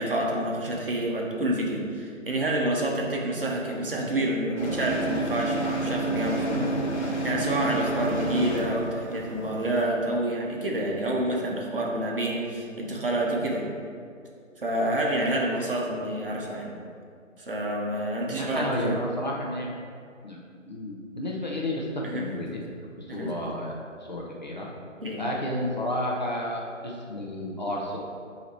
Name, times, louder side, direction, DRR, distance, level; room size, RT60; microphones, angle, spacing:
voice 1, 0.0-13.7 14.6-16.7 17.4-19.0 22.0-22.3 23.1-23.3 25.0-25.2, right 1 dB, 45° right, -2 dB, 1.0 m, -28 dB
sound 1, 4.6-9.8, right 2 dB, 55° left, 1.3 m, -30 dB
voice 2, 18.3-19.7 20.2-20.4 20.7-22.5 23.0-23.8 24.1-24.7 25.2-28.0, left 1 dB, 35° left, -3 dB, 0.7 m, -31 dB
7.7 x 2.9 x 4.5 m, 2.3 s
figure-of-eight pair, 155°, 39 cm